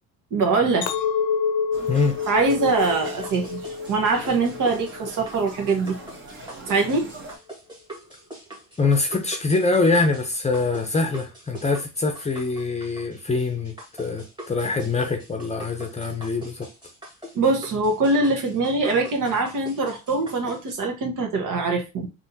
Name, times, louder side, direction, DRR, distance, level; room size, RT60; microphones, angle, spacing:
voice 1, 0.3-0.9 2.3-3.6 3.9-5.9 6.7-7.1 17.3-22.1, right 3 dB, 60° right, 1.2 m, -23 dB
Chink clink, 0.8-5.2 5.6-6.1, left 6 dB, 70° left, 0.7 m, -28 dB
sound 1, 1.7-7.4, right 2 dB, 35° right, 1.1 m, -42 dB
sound 2, 2.8-20.7, right 1 dB, 10° right, 1.6 m, -43 dB
voice 2, 8.8-16.7, left 3 dB, 20° left, 0.7 m, -24 dB
3.4 x 2.8 x 2.7 m
cardioid pair, 105°, 36 cm